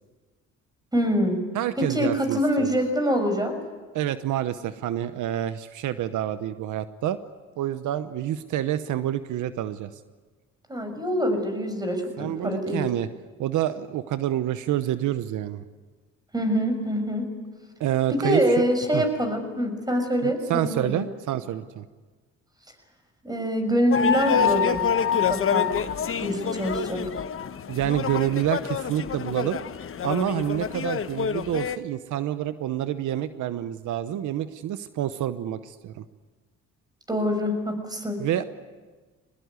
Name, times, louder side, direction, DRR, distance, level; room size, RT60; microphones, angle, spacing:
voice 1, 0.9-1.4 1.8-3.5 10.7-12.8 16.3-17.3 18.1-21.0 23.2-24.8 25.1-25.7 26.2-27.0 37.1-38.3, equal, 15° right, 6 dB, 6.1 m, -25 dB
voice 2, 1.5-2.8 3.9-7.2 7.6-9.9 12.2-13.1 13.4-15.6 17.8-18.4 18.9-19.0 20.2-21.9 27.7-29.6 30.0-36.0 38.2-38.4, right 12 dB, 80° right, 12 dB, 1.0 m, -28 dB
sound 1, 23.9-31.8, left 7 dB, 45° left, 1.1 m, -26 dB
23.5 x 20.0 x 9.6 m, 1.3 s
cardioid pair, 90°, 30 cm